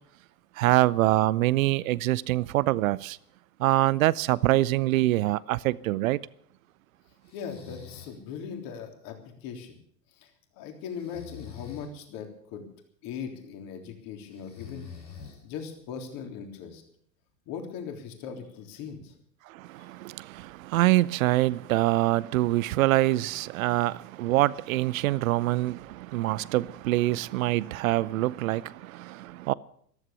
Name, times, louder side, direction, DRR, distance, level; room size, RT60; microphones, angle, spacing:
voice 1, 0.6-3.2 3.6-6.2 19.5-29.5, right 17 dB, 55° right, 0.7 m, -25 dB
Breathing, 7.2-8.2 10.9-11.9 14.3-15.7, left 7 dB, 85° left, 5.3 m, -45 dB
voice 2, 7.3-9.8 10.2-10.3 10.5-12.7 13.0-14.9 15.4-16.8 17.5-19.1, left 7 dB, 45° left, 3.6 m, -39 dB
14.5 x 13.5 x 7.0 m
hypercardioid pair, 95°, 49 cm